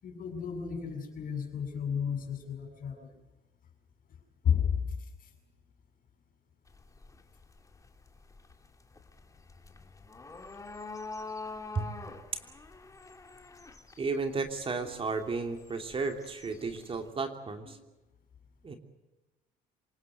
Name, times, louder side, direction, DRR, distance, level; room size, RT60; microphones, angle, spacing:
voice 1, 0.0-3.1 4.4-4.7 14.8-14.9 17.6-17.7, left 7 dB, 55° left, 6 dB, 7.2 m, -32 dB
sound 1, 6.7-17.1, left 3 dB, 20° left, 2.7 m, -46 dB
voice 2, 14.0-17.8 18.6-18.8, right 4 dB, 35° right, 5 dB, 3.0 m, -33 dB
27.0 x 18.5 x 7.9 m, 1.1 s
cardioid pair, 110°, 17 cm